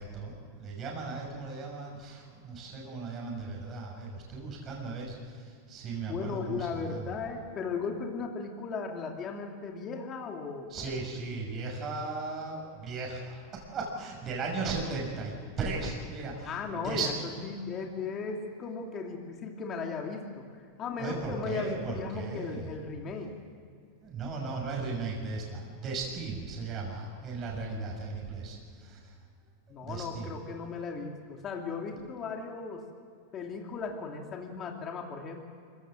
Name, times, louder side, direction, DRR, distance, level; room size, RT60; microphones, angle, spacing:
voice 1, 0.0-7.1 10.7-16.5 16.8-17.1 21.0-22.7 24.0-29.1 29.8-30.3, right 3 dB, 30° right, -1 dB, 6.0 m, -36 dB
voice 2, 6.1-10.9 11.3-11.5 16.4-20.5 20.8-23.3 29.7-32.8 33.3-35.4, left 4 dB, 30° left, 2 dB, 2.5 m, -36 dB
25.5 x 16.0 x 7.6 m, 2.3 s
supercardioid pair, 130°, 0 cm